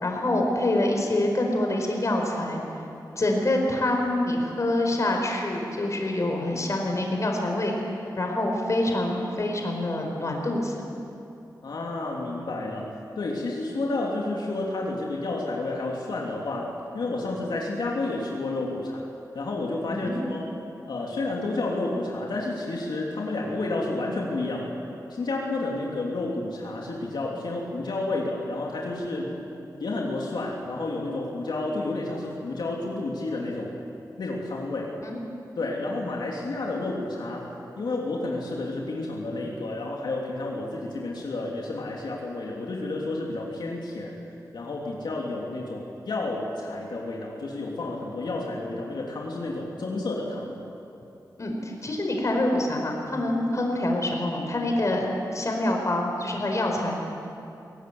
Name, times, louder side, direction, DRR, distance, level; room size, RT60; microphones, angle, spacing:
voice 1, 0.0-2.6 3.2-7.7 8.2-10.8 19.9-20.2 35.0-35.2 51.4-56.9, left 1 dB, 45° left, 1 dB, 4.8 m, -26 dB
voice 2, 11.6-19.1 19.3-20.5 20.9-24.8 25.1-29.3 29.8-33.7 34.2-34.9 35.6-37.5 37.8-44.2 44.5-50.5, left 2 dB, 85° left, -2 dB, 3.4 m, -30 dB
23.0 x 17.5 x 9.8 m, 2.7 s
wide cardioid pair, 90°, 7 cm